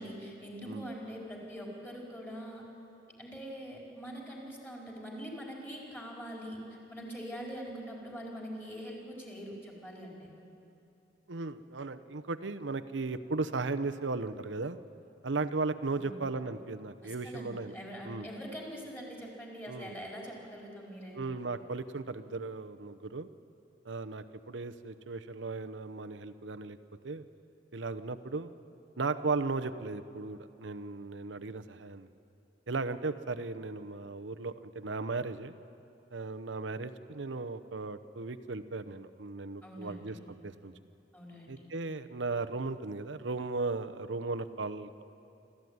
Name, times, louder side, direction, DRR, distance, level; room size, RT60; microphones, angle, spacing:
voice 1, 0.0-2.6 3.2-6.6 6.9-10.3 16.0-16.2 17.0-21.3 39.6-40.2 41.1-41.7, equal, 10° left, -2 dB, 4.4 m, -43 dB
voice 2, 11.3-14.8 15.2-17.7 18.0-18.3 19.7-19.9 21.1-23.3 23.8-26.8 27.0-27.2 27.7-28.5 29.0-32.1 32.7-35.5 36.1-40.2 40.4-40.7 41.5-45.0, right 3 dB, 70° right, 10 dB, 0.9 m, -36 dB
26.0 x 14.5 x 9.5 m, 2.8 s
head